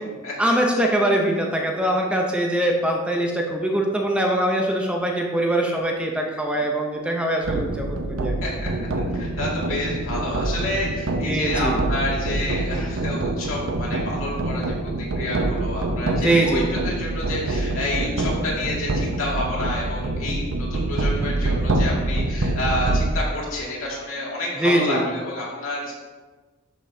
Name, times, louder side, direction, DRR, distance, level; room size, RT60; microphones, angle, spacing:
voice 1, 0.4-8.4 11.3-11.8 16.2-16.7 24.6-25.1, right 1 dB, 5° right, 0 dB, 0.6 m, -22 dB
sound 1, 7.4-23.1, right 2 dB, 75° right, 0.7 m, -25 dB
voice 2, 9.1-25.9, left 1 dB, 75° left, -5 dB, 2.3 m, -29 dB
11.0 x 5.3 x 2.7 m, 1.3 s
head